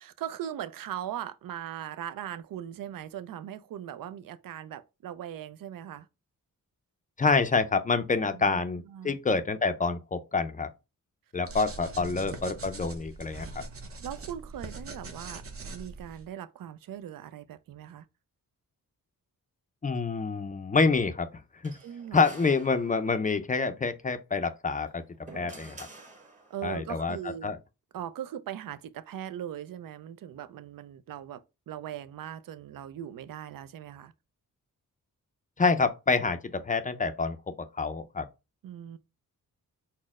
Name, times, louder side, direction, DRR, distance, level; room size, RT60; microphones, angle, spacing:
voice 1, 0.0-6.1 8.3-8.6 8.9-9.2 12.0-12.3 14.0-18.1 21.8-22.3 26.5-27.5 27.9-34.1 38.6-39.0, right 10 dB, 70° right, 0.5 m, -40 dB
voice 2, 7.2-10.7 11.3-13.6 19.8-21.3 21.6-21.7 22.1-25.0 25.3-25.8 26.6-27.2 27.4-27.6 35.6-37.4 37.8-38.3, left 4 dB, 25° left, 0.4 m, -27 dB
sound 1, 11.4-16.3, right 3 dB, 40° right, 0.8 m, -42 dB
sound 2, 21.6-23.4 24.7-26.8, right 3 dB, 20° right, 1.0 m, -49 dB
4.2 x 2.1 x 3.5 m
cardioid pair, 85°, 35 cm